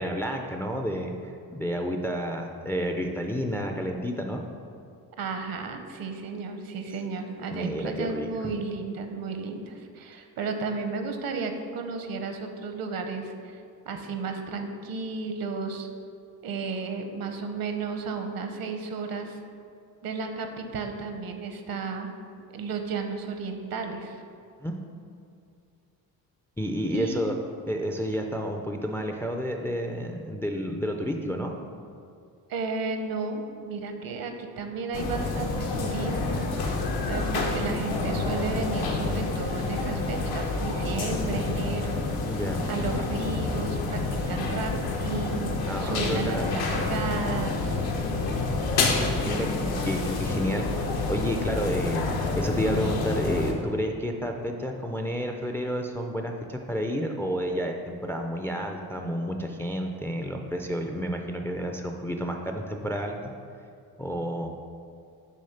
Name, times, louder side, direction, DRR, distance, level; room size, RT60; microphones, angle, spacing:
voice 1, 0.0-4.4 7.5-8.3 24.6-24.8 26.6-27.3 27.7-31.5 42.2-42.7 45.7-46.5 49.2-50.7 51.1-63.3 64.0-64.5, equal, 5° left, 3 dB, 0.3 m, -30 dB
voice 2, 5.2-13.6 13.9-15.9 16.4-19.4 20.0-22.1 22.5-24.2 26.9-27.3 32.5-36.4 36.7-42.0 42.7-45.5 45.8-47.8, right 4 dB, 65° right, 6 dB, 0.8 m, -33 dB
sound 1, 34.9-53.5, left 3 dB, 80° left, 0.9 m, -28 dB
6.4 x 3.4 x 5.7 m, 2.4 s
cardioid pair, 105°, 37 cm